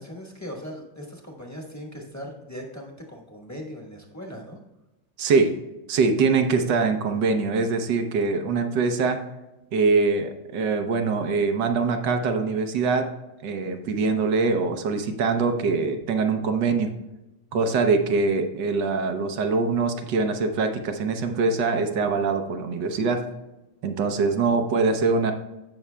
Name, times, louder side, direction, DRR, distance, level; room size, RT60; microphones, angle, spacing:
voice 1, 0.0-4.6, equal, 10° left, 0 dB, 1.1 m, -39 dB
voice 2, 5.2-5.5 5.9-9.2 9.7-13.1 13.4-16.9 17.5-23.2 23.8-25.3, right 4 dB, 75° right, 6 dB, 1.5 m, -23 dB
15.5 x 6.1 x 2.2 m, 1.0 s
omnidirectional pair, 2.0 m